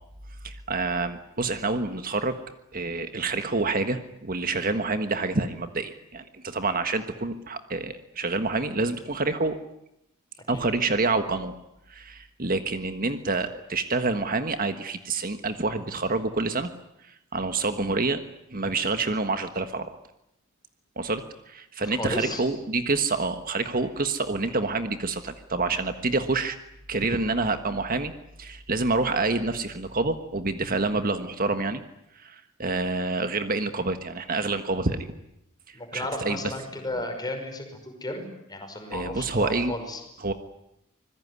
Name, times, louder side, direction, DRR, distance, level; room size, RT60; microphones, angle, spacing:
voice 1, 0.4-2.4 2.7-9.6 10.5-11.5 11.9-16.7 17.0-18.2 18.5-20.0 21.0-26.6 26.9-28.1 28.4-31.8 32.1-35.1 35.7-36.5 38.9-39.7 40.2-40.3, right 3 dB, 40° right, 9 dB, 1.5 m, -27 dB
voice 2, 21.8-22.4 35.7-38.2 38.5-40.0, left 1 dB, 20° left, 4 dB, 5.6 m, -34 dB
26.0 x 21.0 x 9.7 m, 0.83 s
head